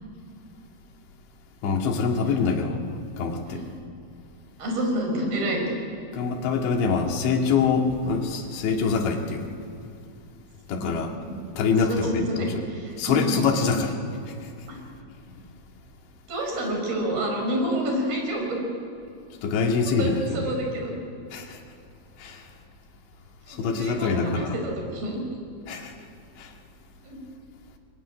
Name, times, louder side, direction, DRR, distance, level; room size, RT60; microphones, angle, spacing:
voice 1, 1.6-2.8 3.2-3.6 6.1-9.5 10.7-11.1 11.6-12.6 13.0-13.9 19.4-20.5 21.3-21.6 22.2-22.4 23.6-24.6 25.7-25.9 26.4-26.5, left 5 dB, 80° left, 2 dB, 4.4 m, -25 dB
voice 2, 4.6-5.7 10.7-10.9 11.2-11.4 11.8-13.7 14.7-14.8 16.3-18.6 19.6-21.0 23.5-25.3 27.0-27.2, right 1 dB, 55° right, 1 dB, 6.9 m, -29 dB
23.0 x 22.5 x 9.9 m, 2.5 s
omnidirectional pair, 5.1 m